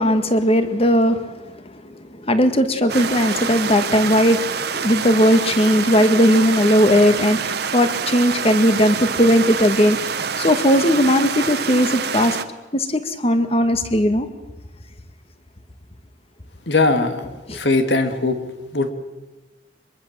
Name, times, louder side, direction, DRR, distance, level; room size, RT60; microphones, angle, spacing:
voice 1, 0.0-10.0 10.4-12.4 12.7-14.3 17.5-17.6, equal, 35° left, 9 dB, 2.0 m, -18 dB
sound 1, 2.9-12.4, right 6 dB, 65° right, 1.3 m, -26 dB
voice 2, 16.7-18.4 18.7-18.9, left 3 dB, 70° left, 7 dB, 2.7 m, -20 dB
24.5 x 22.5 x 7.6 m, 1.2 s
head